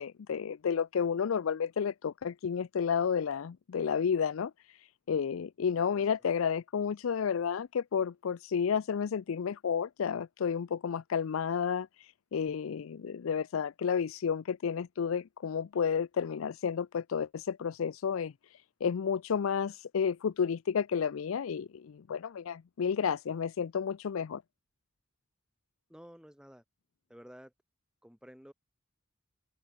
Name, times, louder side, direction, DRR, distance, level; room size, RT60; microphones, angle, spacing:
voice 1, 0.0-24.4, left 7 dB, 85° left, 0.4 m, -31 dB
voice 2, 25.9-26.6 27.1-27.5 28.0-28.5, equal, 5° right, 2.0 m, -52 dB
head